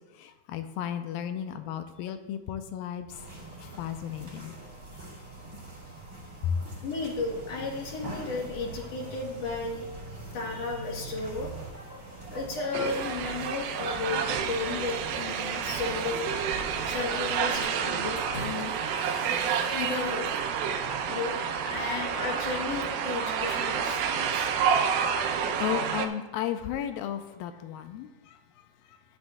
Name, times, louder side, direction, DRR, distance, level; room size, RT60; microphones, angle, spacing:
voice 1, 0.2-3.1 3.6-4.5 6.4-6.6 24.5-25.0 25.6-29.0, left 9 dB, 85° left, 8 dB, 2.4 m, -34 dB
sound 1, 3.1-17.4, right 2 dB, 20° right, 3.6 m, -43 dB
voice 2, 6.8-9.9 10.3-11.5 12.3-16.3 16.8-18.7 19.7-20.3 21.1-24.5, left 4 dB, 60° left, 0 dB, 1.9 m, -34 dB
sound 2, 12.7-26.1, right 7 dB, 85° right, 2.6 m, -29 dB
Water / Splash splatter, 18.2-20.5, left 2 dB, 45° left, 2.8 m, -45 dB
11.5 x 10.5 x 2.3 m, 1.1 s
omnidirectional pair, 4.2 m